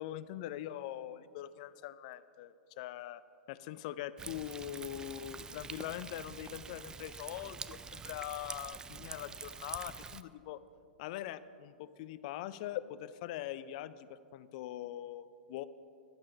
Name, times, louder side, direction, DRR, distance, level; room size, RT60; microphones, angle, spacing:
voice 1, 0.0-3.2 3.5-10.6 11.0-15.7, left 13 dB, 50° left, 16 dB, 0.4 m, -42 dB
Thunder, 4.2-10.2, right 5 dB, 15° right, 0.3 m, -46 dB
12.0 x 8.6 x 5.3 m, 2.4 s
hypercardioid pair, 105°, 5 cm